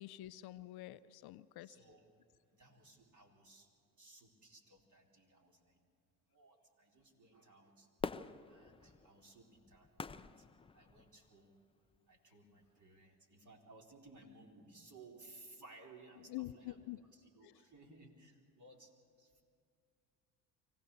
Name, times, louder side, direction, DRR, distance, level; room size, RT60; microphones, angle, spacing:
voice 1, 0.0-1.7 16.2-17.0 17.4-17.6, left 16 dB, 55° left, 14 dB, 0.6 m, -47 dB
voice 2, 1.6-2.0 2.5-3.7 4.0-5.8 6.3-7.9 8.4-10.5 10.7-11.6 12.1-18.9 19.2-19.4, right 2 dB, 40° right, 1 dB, 4.2 m, -60 dB
Fireworks, 8.0-11.3 11.9-12.0, left 4 dB, 10° left, 0.5 m, -46 dB
24.5 x 17.0 x 6.8 m, 2.3 s
hypercardioid pair, 65°, 46 cm